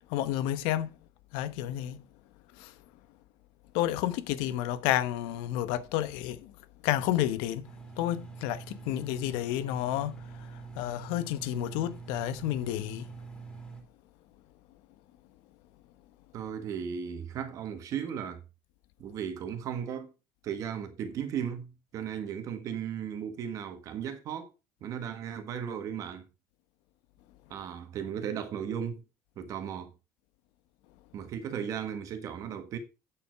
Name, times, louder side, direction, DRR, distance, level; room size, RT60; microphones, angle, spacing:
voice 1, 0.1-0.9 1.3-2.0 2.6-2.7 3.7-6.5 6.8-7.7 8.0-13.1, left 13 dB, 70° left, 1.0 m, -31 dB
Engine, 7.6-13.8, right 5 dB, 10° left, 2.5 m, -45 dB
voice 2, 16.3-18.4 19.0-20.1 20.4-24.5 24.8-26.2 27.5-29.0 29.4-29.9 31.1-32.8, right 8 dB, 40° right, 1.6 m, -36 dB
8.7 x 7.1 x 4.6 m
cardioid pair, 170°, 9 cm